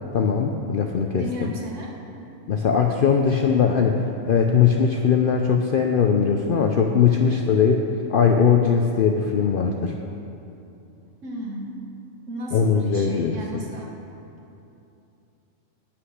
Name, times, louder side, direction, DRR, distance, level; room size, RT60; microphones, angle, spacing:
voice 1, 0.1-1.5 2.5-4.0 4.3-7.8 8.1-9.9 12.5-13.4, left 6 dB, 65° left, 3 dB, 0.5 m, -20 dB
voice 2, 1.1-1.9 7.1-7.4 11.2-11.8 12.3-13.9, equal, 65° right, -1 dB, 1.6 m, -34 dB
9.6 x 5.9 x 6.4 m, 2.8 s
omnidirectional pair, 1.4 m